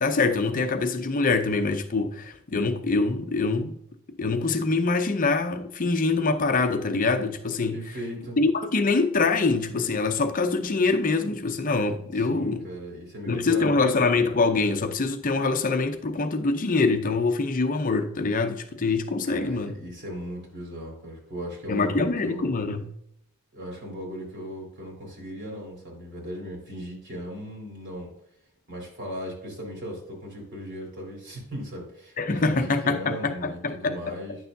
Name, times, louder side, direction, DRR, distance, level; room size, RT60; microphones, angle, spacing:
voice 1, 0.0-3.8 4.2-7.8 8.4-12.7 13.3-19.7 21.7-22.9 32.2-34.1, left 3 dB, 40° left, 0.6 m, -24 dB
voice 2, 7.7-8.4 12.1-13.9 19.2-22.5 23.5-28.1 28.7-34.4, equal, 55° right, 3.4 m, -37 dB
10.0 x 6.7 x 2.7 m
head